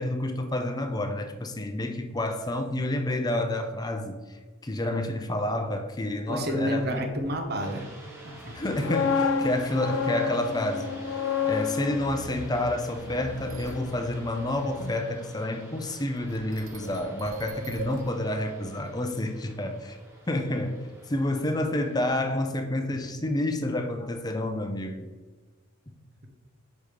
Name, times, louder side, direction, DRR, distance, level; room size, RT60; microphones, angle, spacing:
voice 1, 0.0-6.8 8.5-11.0 11.5-20.0 20.3-25.1, left 1 dB, 20° left, 0.6 m, -29 dB
voice 2, 6.3-7.9 8.2-8.6, equal, 50° right, 1.0 m, -30 dB
sound 1, 7.6-22.2, right 2 dB, 15° right, 1.1 m, -49 dB
sound 2, 8.6-14.5 14.8-15.0, left 5 dB, 70° left, 0.6 m, -30 dB
sound 3, 13.4-14.0 16.2-18.5 18.9-19.2, right 3 dB, 75° right, 0.6 m, -40 dB
5.2 x 4.8 x 5.0 m
head